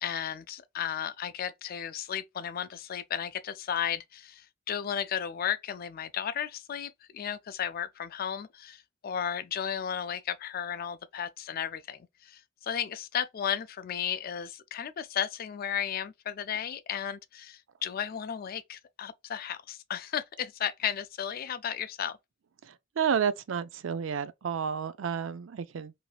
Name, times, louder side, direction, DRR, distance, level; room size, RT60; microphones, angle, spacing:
voice 1, 0.0-22.2, left 9 dB, 50° left, 0.4 m, -34 dB
voice 2, 22.7-25.9, right 7 dB, 75° right, 0.4 m, -31 dB
3.1 x 2.7 x 2.3 m
head